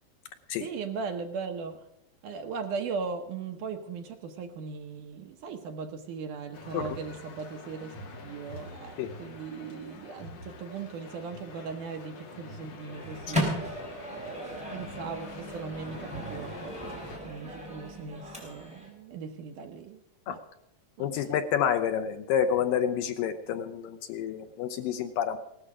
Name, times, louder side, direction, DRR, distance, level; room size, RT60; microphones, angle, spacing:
voice 1, 0.6-1.8 2.2-8.0 8.2-16.9 17.2-20.0 20.3-20.4 21.0-21.3, right 5 dB, 70° right, 5 dB, 2.0 m, -38 dB
sound 1, 6.5-17.2, left 2 dB, 50° left, 2.4 m, -46 dB
Microwave oven, 12.9-18.9, equal, ahead, 4.1 m, -36 dB
voice 2, 21.0-25.4, left 8 dB, 80° left, 8 dB, 2.2 m, -29 dB
18.0 x 13.5 x 5.0 m, 0.83 s
omnidirectional pair, 4.6 m